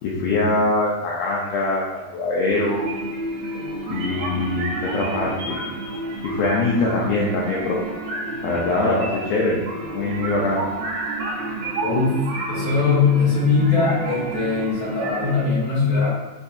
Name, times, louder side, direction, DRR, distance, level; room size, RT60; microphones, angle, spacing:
voice 1, 0.0-2.9 3.9-5.6 6.2-7.8 8.4-9.6 9.9-10.6, left 2 dB, 80° left, -4 dB, 2.1 m, -23 dB
sound 1, 2.5-15.5, right 2 dB, 80° right, 2.3 m, -30 dB
voice 2, 11.8-12.2 12.5-16.1, left 5 dB, 55° left, -10 dB, 2.5 m, -20 dB
6.4 x 2.6 x 2.4 m, 1.2 s
omnidirectional pair, 4.6 m